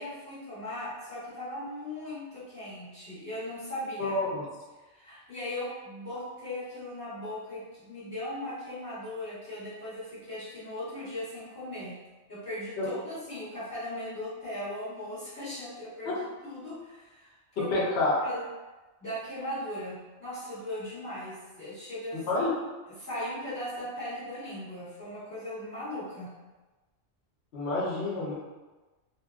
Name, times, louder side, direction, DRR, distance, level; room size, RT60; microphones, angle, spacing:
voice 1, 0.0-4.2 4.9-12.0 12.3-17.7 18.2-18.4 19.0-22.3 23.0-26.3, left 1 dB, 15° left, -13 dB, 1.0 m, -38 dB
voice 2, 4.0-4.4 12.8-12.9 17.6-18.1 22.3-22.5 27.5-28.3, left 2 dB, 60° left, -5 dB, 1.0 m, -28 dB
2.7 x 2.7 x 2.4 m, 1.2 s
omnidirectional pair, 1.3 m